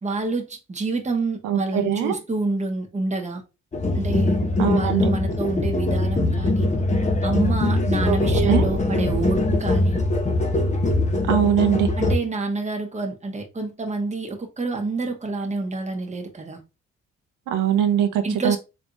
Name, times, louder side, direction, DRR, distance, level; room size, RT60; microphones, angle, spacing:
voice 1, 0.0-3.4 3.9-4.4 4.7-6.7 7.2-10.0 12.0-16.6 18.2-18.6, right 3 dB, 25° right, 1.2 m, -27 dB
voice 2, 1.4-2.2 4.6-5.1 8.0-8.6 11.3-11.9 17.5-18.6, right 9 dB, 90° right, 0.8 m, -22 dB
sound 1, 3.7-12.1, left 2 dB, 25° left, 0.9 m, -22 dB
4.7 x 3.5 x 2.6 m
cardioid pair, 90°, 30 cm